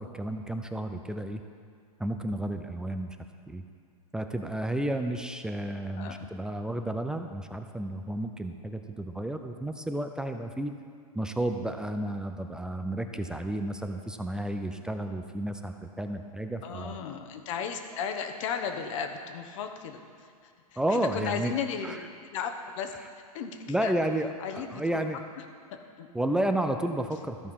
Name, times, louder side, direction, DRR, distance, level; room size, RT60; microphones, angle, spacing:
voice 1, 0.0-1.4 2.0-3.2 3.5-3.6 4.1-10.7 11.1-17.0 20.8-21.5 21.8-22.0 23.7-25.2 26.1-27.5, right 1 dB, 5° right, 6 dB, 0.3 m, -32 dB
voice 2, 6.0-6.3 16.6-22.0 22.3-22.9 23.3-23.9 24.4-25.0 26.0-26.1, left 7 dB, 55° left, 6 dB, 1.1 m, -35 dB
13.5 x 4.9 x 5.4 m, 2.2 s
hypercardioid pair, 125°, 19 cm